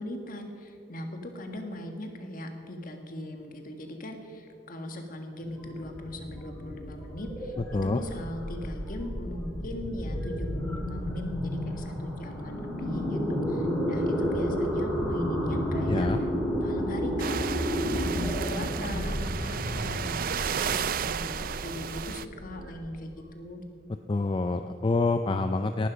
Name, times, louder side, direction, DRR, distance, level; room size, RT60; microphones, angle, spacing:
voice 1, 0.0-7.5 7.8-16.1 16.6-23.6, left 1 dB, 50° left, 4 dB, 1.7 m, -40 dB
sound 1, 5.4-23.2, equal, 5° left, 2.7 m, -32 dB
voice 2, 15.9-16.2 24.1-25.9, left 3 dB, 25° left, 8 dB, 0.4 m, -26 dB
sound 2, 17.2-22.2, right 7 dB, 50° right, 0.4 m, -33 dB
18.0 x 12.0 x 5.1 m, 2.5 s
head